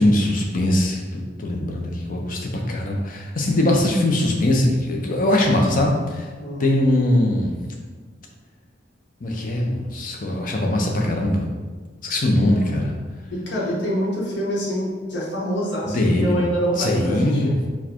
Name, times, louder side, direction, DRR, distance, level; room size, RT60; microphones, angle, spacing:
voice 1, 0.0-6.3 6.6-7.6 9.2-11.5 12.0-12.9 15.9-16.4 16.8-17.6, left 1 dB, 50° left, 0 dB, 0.7 m, -21 dB
voice 2, 13.3-17.5, equal, 70° left, -6 dB, 1.3 m, -26 dB
4.7 x 2.2 x 4.4 m, 1.4 s
head